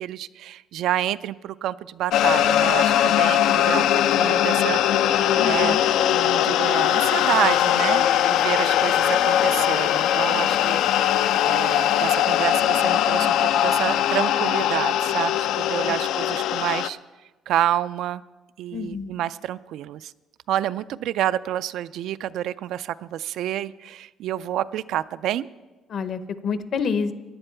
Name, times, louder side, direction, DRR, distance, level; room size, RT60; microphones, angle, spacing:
voice 1, 0.0-5.8 6.1-17.0 17.5-18.2 18.6-20.1 20.5-25.5, right 12 dB, 70° right, 15 dB, 0.3 m, -28 dB
sound 1, 2.1-16.9, left 11 dB, 80° left, 0.4 m, -20 dB
voice 2, 5.4-5.8 10.4-10.6 15.9-16.0 18.7-19.1 25.9-27.1, left 5 dB, 45° left, 12 dB, 0.7 m, -28 dB
16.5 x 11.0 x 4.5 m, 1.2 s
cardioid pair, 160°, 0 cm